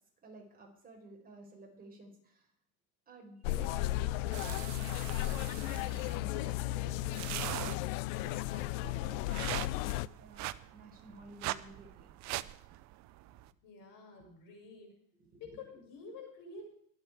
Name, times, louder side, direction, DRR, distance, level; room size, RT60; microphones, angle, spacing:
voice 1, 0.2-2.5 3.1-7.5 8.1-12.1 15.2-15.6, right 2 dB, 20° right, 0 dB, 4.8 m, -53 dB
sound 1, 3.4-10.1, left 17 dB, 65° left, 0.6 m, -35 dB
sound 2, 4.3-13.5, right 16 dB, 40° right, 0.6 m, -43 dB
voice 2, 13.6-14.9 15.4-16.7, left 4 dB, 50° left, 2 dB, 5.8 m, -49 dB
22.5 x 8.1 x 4.9 m, 0.69 s
supercardioid pair, 135°, 42 cm